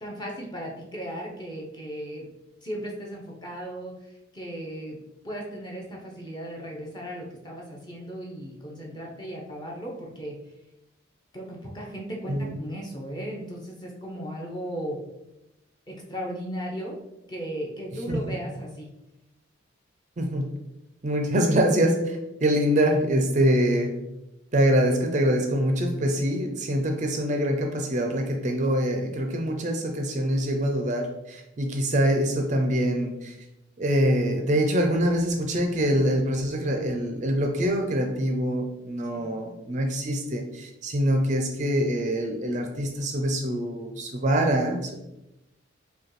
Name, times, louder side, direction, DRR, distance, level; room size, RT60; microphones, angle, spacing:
voice 1, 0.0-2.3 2.6-5.0 5.2-10.4 11.3-15.0 15.9-17.0 17.3-18.9 39.1-39.4, equal, 20° left, -2 dB, 0.7 m, -36 dB
voice 2, 20.2-20.5 21.0-24.0 24.5-33.4 33.8-44.9, equal, 35° right, 3 dB, 0.4 m, -24 dB
5.0 x 2.2 x 3.1 m, 0.90 s
head